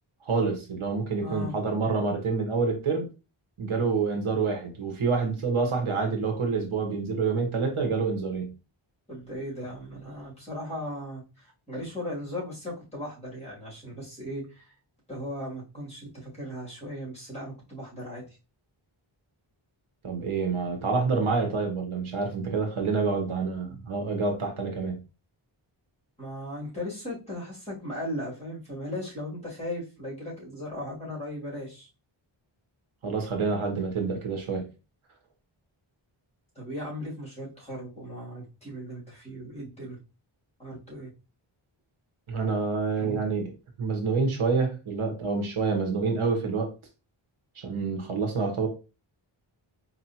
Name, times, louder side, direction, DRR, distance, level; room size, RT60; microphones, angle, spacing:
voice 1, 0.2-3.1 3.6-8.5 20.0-25.0 33.0-34.7 42.3-43.5 43.8-46.7 47.6-48.7, right 4 dB, 75° right, 3 dB, 1.1 m, -27 dB
voice 2, 1.2-1.5 9.1-14.7 15.1-18.2 26.2-31.9 36.6-40.0 40.6-41.1, left 1 dB, 15° left, -5 dB, 2.4 m, -37 dB
4.5 x 2.8 x 2.8 m, 0.30 s
wide cardioid pair, 105°, 49 cm